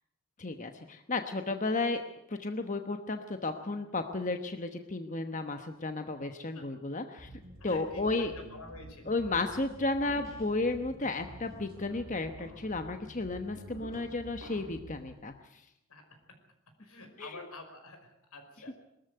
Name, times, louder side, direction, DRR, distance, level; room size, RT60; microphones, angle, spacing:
voice 1, 0.4-2.0 2.3-7.3 7.6-8.3 9.1-15.6 17.2-17.4, left 3 dB, 35° left, 7 dB, 1.1 m, -33 dB
sound 1, 7.2-15.2, right 1 dB, 40° right, 6.2 m, -50 dB
voice 2, 7.6-9.2 15.9-16.0 16.8-18.8, left 2 dB, 85° left, 6 dB, 5.3 m, -48 dB
sound 2, 9.7-10.8 11.4-14.9, right 1 dB, 15° right, 5.1 m, -53 dB
22.5 x 13.5 x 9.4 m, 0.82 s
head